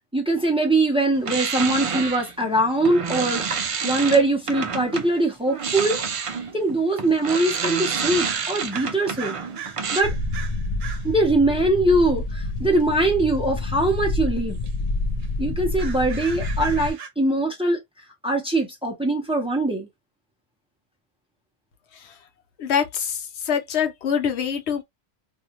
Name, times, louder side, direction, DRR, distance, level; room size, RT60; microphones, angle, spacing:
voice 1, 0.1-3.4 3.8-6.0 6.5-9.4 9.9-10.1 11.0-14.6 15.4-17.8 18.2-19.9, right 2 dB, 5° right, 0.7 m, -22 dB
sound 1, 1.2-5.1 5.5-10.0, right 5 dB, 50° right, 0.4 m, -28 dB
sound 2, 5.3-5.4 6.2-6.3 7.2-7.3 8.2-11.2 12.8-13.2 13.8-14.0 14.3-14.8 15.2-15.3 15.6-17.1, right 7 dB, 70° right, 0.9 m, -39 dB
sound 3, 10.0-16.9, left 2 dB, 50° left, 0.5 m, -28 dB
voice 2, 22.6-24.8, left 7 dB, 85° left, 1.0 m, -25 dB
2.7 x 2.4 x 2.8 m
omnidirectional pair, 1.1 m